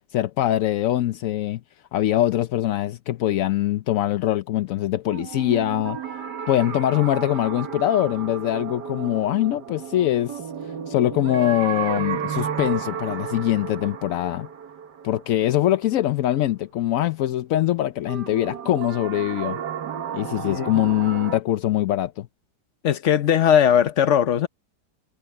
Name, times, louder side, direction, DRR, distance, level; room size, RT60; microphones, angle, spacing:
voice 1, 0.1-1.6 1.9-6.0 6.5-14.5 15.0-19.6 20.1-22.3, left 13 dB, 70° left, 0.8 m, -23 dB
sound 1, 5.1-16.0 18.1-21.4, right 8 dB, 70° right, 1.8 m, -33 dB
voice 2, 20.4-20.8 22.8-24.5, left 9 dB, 50° left, 1.1 m, -19 dB
omnidirectional pair, 1.9 m